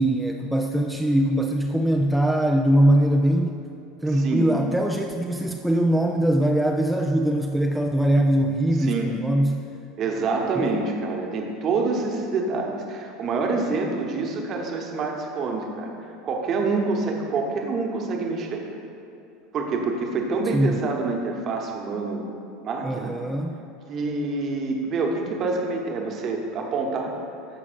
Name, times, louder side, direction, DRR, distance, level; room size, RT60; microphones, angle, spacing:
voice 1, 0.0-3.6 4.0-9.7 10.5-10.6 20.5-20.8 22.8-23.6, right 1 dB, 5° right, 2 dB, 0.3 m, -22 dB
voice 2, 4.1-4.5 8.8-9.2 10.0-18.6 19.5-22.2 22.6-23.1 23.9-27.2, right 3 dB, 35° right, 2 dB, 1.0 m, -27 dB
14.0 x 5.8 x 2.6 m, 2.6 s
figure-of-eight pair, 75°, 0 cm